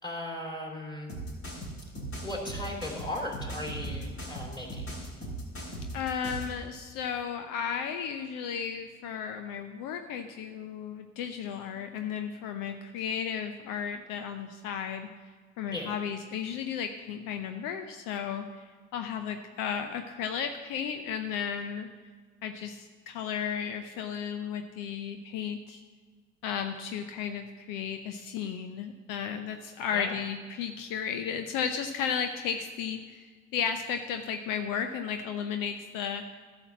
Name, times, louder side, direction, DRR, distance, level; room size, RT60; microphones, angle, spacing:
voice 1, 0.0-1.1 2.2-4.9 15.7-16.0 29.9-30.2, left 1 dB, 10° left, 0 dB, 3.2 m, -37 dB
sound 1, 1.1-6.5, right 1 dB, 40° left, 3.2 m, -38 dB
voice 2, 5.9-15.1 15.6-21.9 22.4-25.8 26.4-33.3 33.5-36.2, left 7 dB, 65° left, 7 dB, 0.7 m, -34 dB
11.5 x 6.1 x 7.0 m, 1.5 s
hypercardioid pair, 60°, 35 cm